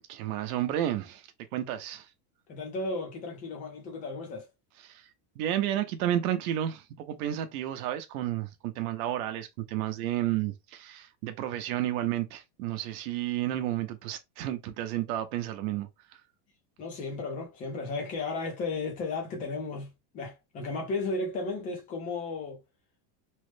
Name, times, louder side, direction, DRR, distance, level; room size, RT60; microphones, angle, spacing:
voice 1, 0.1-1.2 1.5-2.1 4.8-5.1 5.4-15.9, right 12 dB, 65° right, 0.7 m, -31 dB
voice 2, 2.5-4.5 16.8-22.6, left 3 dB, 20° left, 0.4 m, -34 dB
3.1 x 2.0 x 3.1 m
supercardioid pair, 175°, 47 cm